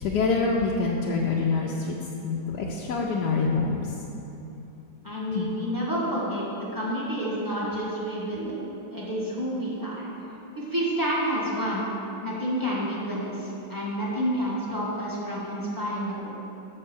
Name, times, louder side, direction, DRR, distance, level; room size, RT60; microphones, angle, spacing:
voice 1, 0.0-2.0 2.2-4.0 5.3-5.5, left 4 dB, 65° left, -3 dB, 1.1 m, -26 dB
voice 2, 5.0-6.4 6.7-8.6 8.9-10.1 10.5-11.9 12.2-16.3, equal, 10° right, -6 dB, 1.3 m, -29 dB
6.5 x 5.4 x 7.0 m, 2.9 s
omnidirectional pair, 2.2 m